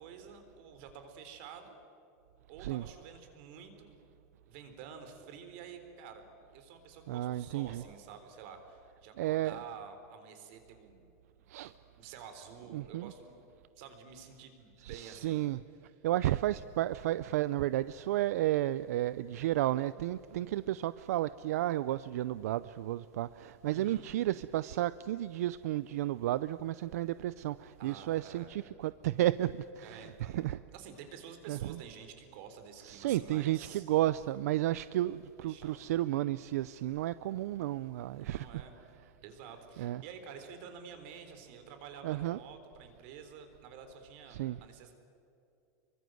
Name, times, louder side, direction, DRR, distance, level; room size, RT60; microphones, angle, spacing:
voice 1, 0.0-1.8 2.5-3.9 4.5-11.1 12.0-13.4 13.8-15.5 15.9-16.0 23.7-24.0 27.8-28.5 29.8-33.8 35.4-35.9 38.0-38.7 39.2-44.9, right 7 dB, 45° right, 3.8 m, -50 dB
voice 2, 7.1-7.8 9.2-9.6 11.5-11.7 12.7-13.1 14.8-15.6 16.0-30.6 31.5-31.8 32.8-38.5 39.8-40.0 42.0-42.4 44.3-44.6, right 14 dB, 75° right, 0.5 m, -32 dB
27.5 x 23.5 x 7.9 m
supercardioid pair, 175°, 9 cm